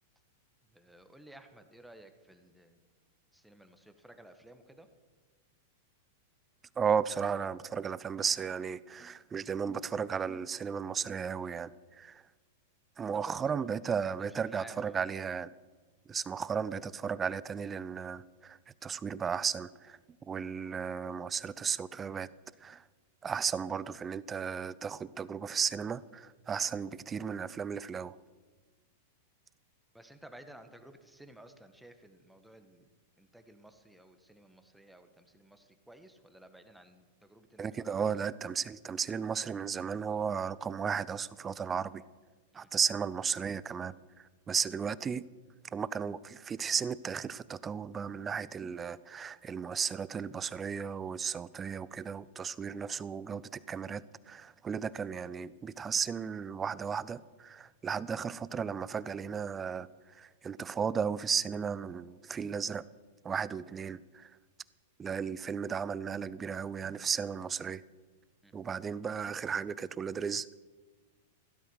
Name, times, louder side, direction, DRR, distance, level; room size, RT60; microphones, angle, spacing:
voice 1, 0.7-2.8 3.3-4.9 13.1-13.6 14.1-15.0 29.9-32.9 33.2-38.2 42.5-42.7 68.4-68.5, right 1 dB, 5° right, 7 dB, 1.6 m, -54 dB
voice 2, 6.8-12.2 13.0-15.5 16.1-22.3 22.6-22.8 23.2-28.2 37.6-42.0 42.5-45.3 45.7-62.8 63.2-64.3 65.0-67.8 68.5-70.5, right 6 dB, 20° right, 19 dB, 0.6 m, -35 dB
16.0 x 12.5 x 6.4 m, 1.4 s
figure-of-eight pair, 95°, 0 cm